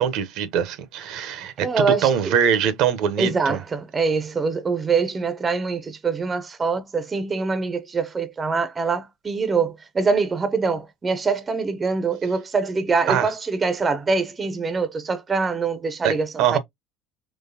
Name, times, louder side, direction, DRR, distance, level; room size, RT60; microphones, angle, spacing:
voice 1, 0.0-3.6 13.1-13.3 16.0-16.1 16.4-16.6, right 8 dB, 65° right, 0.7 m, -22 dB
voice 2, 1.6-2.4 3.2-16.6, right 4 dB, 25° right, 0.7 m, -24 dB
3.8 x 3.1 x 2.8 m
supercardioid pair, 90°, 0 cm